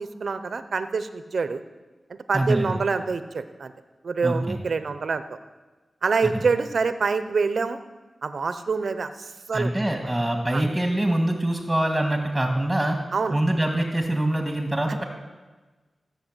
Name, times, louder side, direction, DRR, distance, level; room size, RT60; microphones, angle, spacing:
voice 1, 0.0-1.6 2.1-3.7 4.0-5.2 6.0-7.8 8.2-9.7 10.5-10.6 13.1-13.4, right 4 dB, 70° right, 11 dB, 0.8 m, -26 dB
voice 2, 2.3-2.7 4.2-4.6 6.2-6.3 9.5-13.0 13.3-15.0, right 1 dB, 10° right, 2 dB, 2.0 m, -24 dB
15.5 x 6.9 x 8.1 m, 1.3 s
cardioid pair, 55°, 0 cm